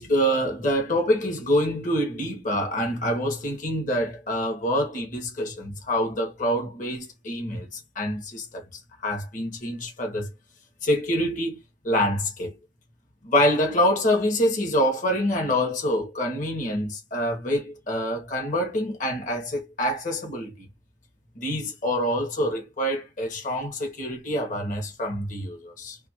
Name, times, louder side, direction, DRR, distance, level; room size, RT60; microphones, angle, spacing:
voice 1, 0.0-10.3 10.8-11.6 11.8-12.6 13.2-20.7 21.4-26.0, equal, 45° left, 0.9 m, -26 dB
2.6 x 2.4 x 2.8 m
head